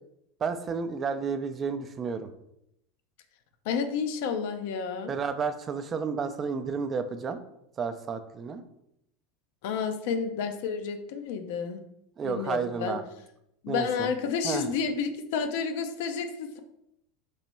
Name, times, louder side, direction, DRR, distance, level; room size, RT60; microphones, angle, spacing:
voice 1, 0.4-2.3 5.1-7.4 7.8-8.6 12.2-13.0 13.7-14.1 14.4-14.7, right 5 dB, 30° right, 9 dB, 0.4 m, -31 dB
voice 2, 3.7-5.1 9.6-11.8 12.2-13.0 13.6-16.6, left 6 dB, 60° left, 7 dB, 0.4 m, -30 dB
3.1 x 2.9 x 4.3 m, 0.79 s
figure-of-eight pair, 80°, 0 cm